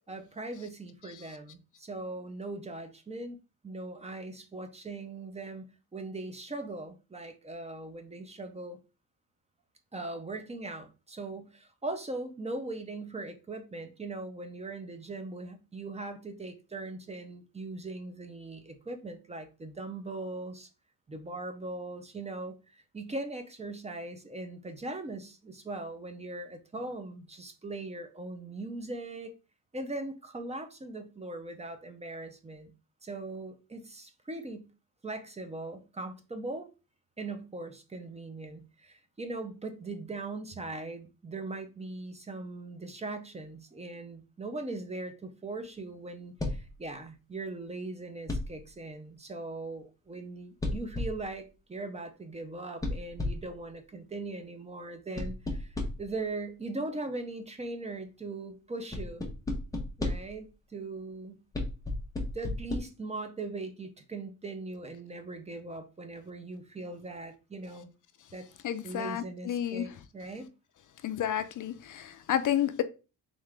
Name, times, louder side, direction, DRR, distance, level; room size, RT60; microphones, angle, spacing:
voice 1, 0.1-3.4 3.6-5.7 5.9-8.8 9.9-20.7 21.1-29.3 29.7-32.7 33.0-34.7 35.0-36.7 37.2-59.3 60.0-61.4 62.3-67.9 68.3-68.5 68.8-70.5, right 2 dB, 15° right, 0.4 m, -40 dB
sound 1, 46.4-46.8 48.3-48.7 50.6-51.3 52.8-53.6 55.2-56.2 58.9-60.4 61.5-62.8, left 2 dB, 10° left, 0.7 m, -34 dB
voice 2, 68.6-69.9 71.0-72.8, left 10 dB, 50° left, 0.4 m, -31 dB
3.7 x 3.6 x 3.2 m
wide cardioid pair, 165°, 39 cm